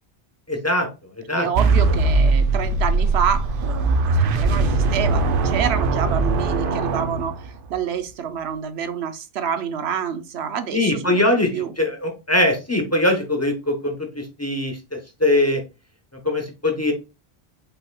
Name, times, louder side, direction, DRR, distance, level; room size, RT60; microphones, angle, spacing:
voice 1, 0.5-0.9 1.3-1.5 10.7-11.5 11.8-14.8 15.2-15.6 16.2-16.9, left 1 dB, 15° left, 1.0 m, -21 dB
voice 2, 1.4-11.7, right 8 dB, 85° right, 1.0 m, -28 dB
sound 1, 1.5-7.7, right 3 dB, 60° right, 0.8 m, -20 dB
5.4 x 4.3 x 2.3 m
omnidirectional pair, 1.1 m